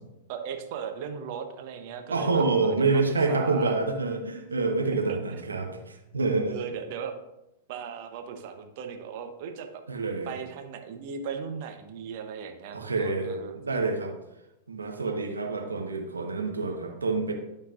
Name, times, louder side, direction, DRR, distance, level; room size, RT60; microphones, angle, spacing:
voice 1, 0.3-3.7 4.9-5.4 6.5-7.1 7.7-9.8 10.2-13.6, right 6 dB, 50° right, 6 dB, 0.9 m, -37 dB
voice 2, 2.1-6.5 9.9-10.3 12.7-14.1 14.7-17.3, right 3 dB, 85° right, 3 dB, 1.1 m, -27 dB
11.5 x 4.5 x 2.5 m, 0.92 s
figure-of-eight pair, 100°, 0 cm